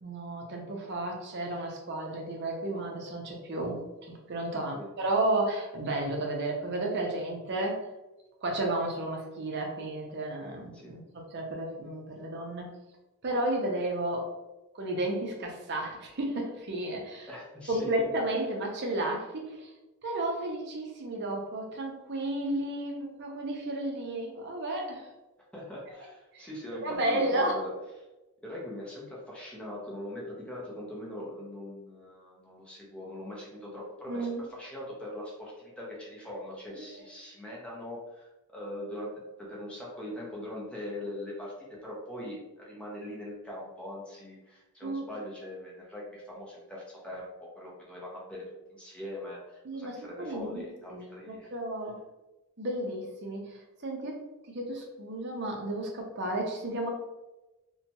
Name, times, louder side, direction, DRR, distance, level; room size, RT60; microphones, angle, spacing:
voice 1, 0.0-7.8 8.4-12.7 13.2-14.3 14.8-17.3 17.7-19.7 20.0-25.1 26.3-26.5 26.8-27.6 34.1-34.4 36.8-37.0 44.8-45.1 49.6-52.0 52.6-54.2 54.5-56.9, right 1 dB, 50° right, 0 dB, 0.6 m, -32 dB
voice 2, 4.5-4.9 10.7-11.0 17.3-17.8 25.5-27.7 28.4-39.1 39.4-41.5 41.8-47.3 47.6-48.4 48.7-51.5, left 1 dB, 5° left, -5 dB, 0.6 m, -41 dB
2.8 x 2.2 x 2.7 m, 1.0 s
head